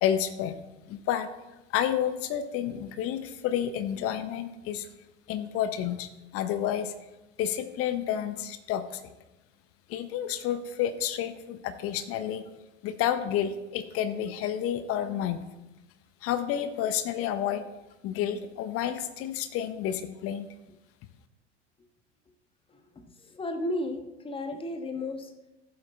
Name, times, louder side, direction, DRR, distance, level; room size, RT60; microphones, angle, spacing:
voice 1, 0.0-0.6 0.9-1.3 1.7-4.9 5.3-6.9 7.4-9.1 9.9-12.4 12.8-15.5 16.2-17.6 18.0-20.5, left 10 dB, 40° left, 11 dB, 0.9 m, -30 dB
voice 2, 22.7-25.5, left 1 dB, 15° left, 7 dB, 1.2 m, -34 dB
14.0 x 8.1 x 3.3 m, 1.0 s
figure-of-eight pair, 80°, 35 cm